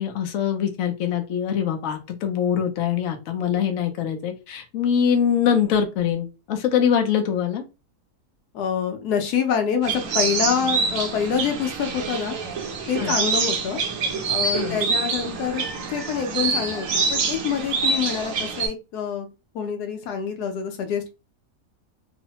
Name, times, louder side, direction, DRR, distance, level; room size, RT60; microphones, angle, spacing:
voice 1, 0.0-7.6 13.0-13.2 14.6-14.8, left 8 dB, 65° left, 4 dB, 0.9 m, -23 dB
voice 2, 8.5-12.4 12.9-13.8 14.3-15.6 15.9-19.3 19.5-21.1, left 7 dB, 90° left, 6 dB, 1.2 m, -26 dB
sound 1, 9.8-18.7, right 4 dB, 65° right, 1.0 m, -26 dB
3.1 x 2.0 x 2.8 m, 0.28 s
omnidirectional pair, 1.6 m